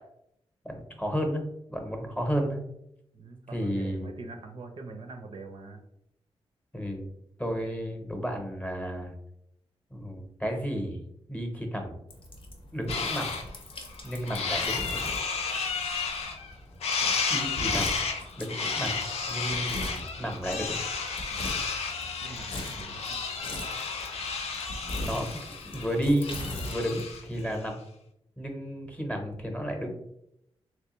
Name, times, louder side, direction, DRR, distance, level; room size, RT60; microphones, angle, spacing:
voice 1, 0.6-1.4 1.7-2.6 3.5-4.1 6.7-7.1 7.4-9.1 9.9-11.0 11.3-12.0 12.7-13.3 14.0-14.8 17.3-18.0 18.4-19.0 19.3-19.7 20.2-20.8 25.0-25.4 25.6-27.8 28.4-29.9, equal, 10° left, 3 dB, 0.8 m, -32 dB
voice 2, 3.1-5.8 17.0-17.2 19.4-20.1 21.3-21.7 22.2-23.2 24.7-25.2, right 3 dB, 55° right, 4 dB, 0.5 m, -44 dB
sound 1, 12.1-27.6, left 1 dB, 55° left, 0.7 m, -41 dB
sound 2, 12.9-13.4 13.9-16.5 16.8-27.3, left 5 dB, 90° left, 0.5 m, -32 dB
3.2 x 2.9 x 3.0 m, 0.77 s
cardioid pair, 90°, 11 cm